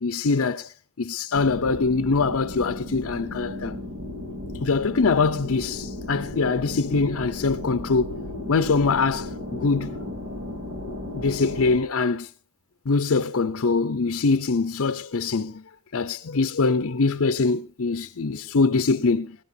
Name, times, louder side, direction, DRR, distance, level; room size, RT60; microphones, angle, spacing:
voice 1, 0.0-3.8 4.6-8.1 8.5-9.9 11.1-12.3 12.9-15.6 15.9-19.4, left 4 dB, 65° left, 0.6 m, -23 dB
sound 1, 1.3-11.8, left 2 dB, 60° right, 3.6 m, -35 dB
22.0 x 16.0 x 2.7 m
head